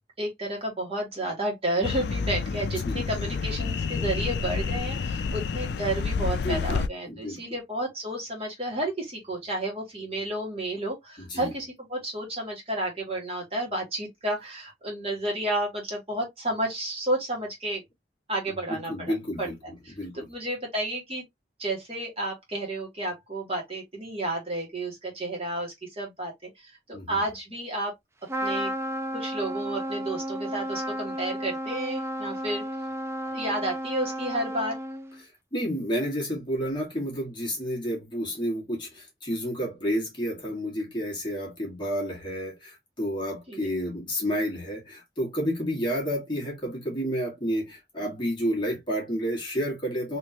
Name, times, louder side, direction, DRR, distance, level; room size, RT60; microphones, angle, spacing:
voice 1, 0.2-17.8 18.3-19.5 19.8-21.2 21.6-27.9 28.4-28.7 29.1-32.6 33.2-34.8 43.5-43.7, right 1 dB, 30° right, 1.7 m, -31 dB
sound 1, 1.8-6.9, left 5 dB, 65° left, 0.4 m, -29 dB
voice 2, 6.4-6.8 7.1-7.4 11.2-11.5 18.7-19.5 19.9-20.2 26.9-27.2 35.2-50.2, equal, 25° left, 1.7 m, -30 dB
Trumpet, 28.3-35.2, equal, 15° right, 0.4 m, -33 dB
3.7 x 3.0 x 2.8 m
head